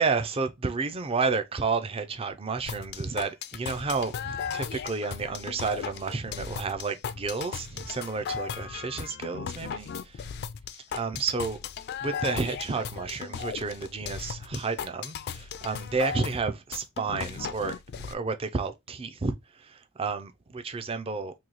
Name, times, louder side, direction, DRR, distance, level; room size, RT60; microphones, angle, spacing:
voice 1, 0.0-10.2 10.9-11.6 12.0-21.3, right 4 dB, 25° right, 0.4 m, -31 dB
sound 1, 2.7-18.1, left 7 dB, 50° left, 0.3 m, -37 dB
3.0 x 2.7 x 3.9 m
head